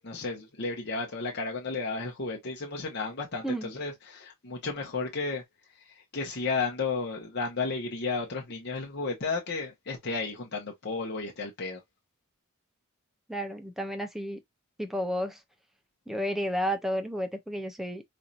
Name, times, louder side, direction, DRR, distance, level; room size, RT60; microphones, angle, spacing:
voice 1, 0.0-5.4 6.1-11.8, left 4 dB, 55° left, 0.9 m, -33 dB
voice 2, 13.3-14.4 14.8-15.4 16.1-18.0, equal, ahead, 0.6 m, -31 dB
4.3 x 2.8 x 2.4 m
head